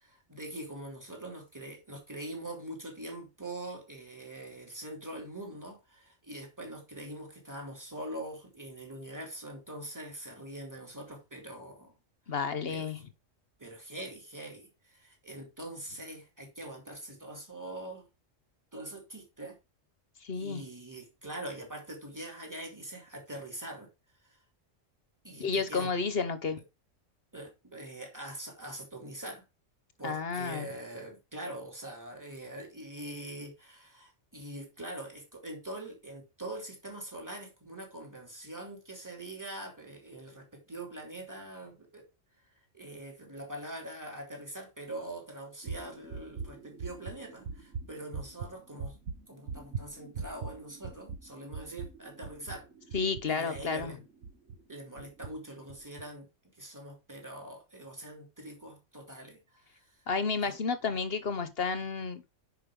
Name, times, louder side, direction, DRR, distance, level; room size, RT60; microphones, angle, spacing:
voice 1, 0.0-11.9 12.7-13.0 13.6-18.1 18.7-19.6 20.3-23.9 24.3-24.4 25.2-25.9 27.3-29.4 30.0-42.1 42.7-49.0 49.3-52.7 53.3-54.0 54.7-56.3 56.6-59.8 60.4-60.5, right 1 dB, 15° right, 2.9 m, -43 dB
voice 2, 12.3-13.0 20.2-20.6 25.4-26.6 30.0-30.7 52.9-53.9 60.1-62.3, left 5 dB, 55° left, 1.2 m, -31 dB
sound 1, 45.6-54.6 55.0-55.3 55.7-56.0, right 5 dB, 75° right, 1.7 m, -41 dB
10.0 x 5.5 x 3.7 m
omnidirectional pair, 1.3 m